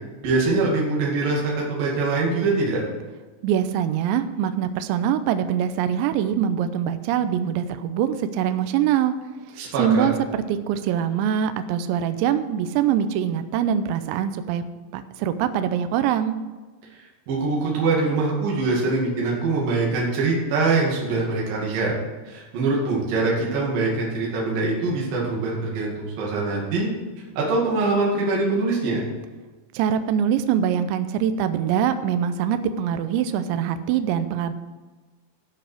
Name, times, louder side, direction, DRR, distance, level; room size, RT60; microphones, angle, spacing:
voice 1, 0.2-2.8 9.6-10.1 16.9-21.9 22.3-26.9 27.4-29.0, right 3 dB, 50° right, -4 dB, 3.5 m, -23 dB
voice 2, 3.4-9.1 9.8-14.6 14.9-16.3 29.7-34.5, right 9 dB, 85° right, 10 dB, 2.7 m, -23 dB
13.5 x 6.3 x 6.4 m, 1.3 s
omnidirectional pair, 5.9 m